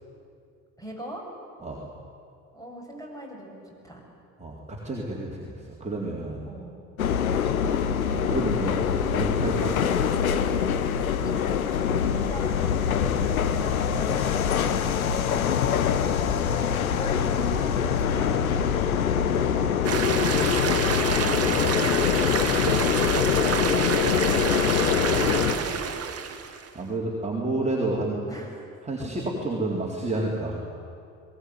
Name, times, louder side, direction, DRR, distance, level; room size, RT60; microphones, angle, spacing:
voice 1, 0.8-1.2 2.5-4.0 6.4-6.9 11.2-12.7 13.5-15.6 16.3-16.5 16.9-20.0 21.1-26.0 28.3-28.6 29.0-29.1, right 1 dB, 10° left, -1 dB, 7.8 m, -42 dB
voice 2, 4.4-6.5 8.1-8.8 9.1-9.9 16.4-16.5 20.1-20.6 26.7-28.2 28.8-30.6, right 2 dB, 15° right, -4 dB, 3.9 m, -30 dB
sound 1, 7.0-25.6, left 8 dB, 85° left, 1.1 m, -24 dB
sound 2, 19.8-26.7, right 7 dB, 35° right, 1.8 m, -28 dB
22.0 x 18.0 x 9.6 m, 2.4 s
figure-of-eight pair, 60°, 41 cm